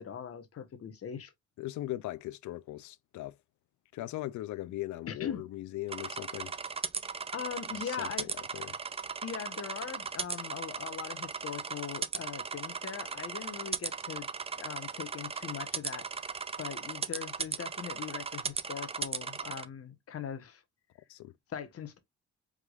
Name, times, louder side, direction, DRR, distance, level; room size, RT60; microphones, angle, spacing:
voice 1, 0.0-1.3 5.1-5.4 7.3-8.3 9.2-14.3 14.6-16.1 16.6-20.6 21.5-22.0, left 8 dB, 50° left, 1.2 m, -40 dB
voice 2, 1.6-3.4 3.9-6.5 7.7-8.8 21.1-21.3, left 16 dB, 75° left, 0.5 m, -39 dB
sound 1, 5.9-19.6, right 5 dB, 20° right, 0.4 m, -37 dB
4.8 x 3.6 x 2.4 m
cardioid pair, 90°, 30 cm